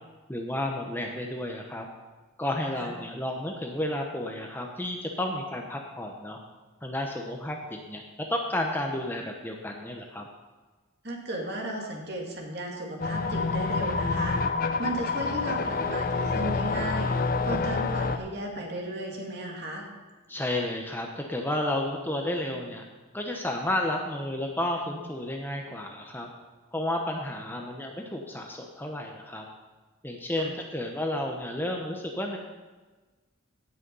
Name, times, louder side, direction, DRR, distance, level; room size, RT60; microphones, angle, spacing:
voice 1, 0.3-1.9 2.4-6.4 6.8-8.0 8.3-10.3 20.3-22.8 23.1-26.3 26.7-29.4 30.0-32.4, left 1 dB, 10° left, 1 dB, 0.9 m, -32 dB
voice 2, 11.0-14.4 14.8-19.9 30.4-30.5, right 1 dB, 50° right, 0 dB, 2.4 m, -35 dB
sound 1, 13.0-18.2, left 4 dB, 40° left, 0.6 m, -27 dB
17.0 x 6.5 x 5.5 m, 1.3 s
head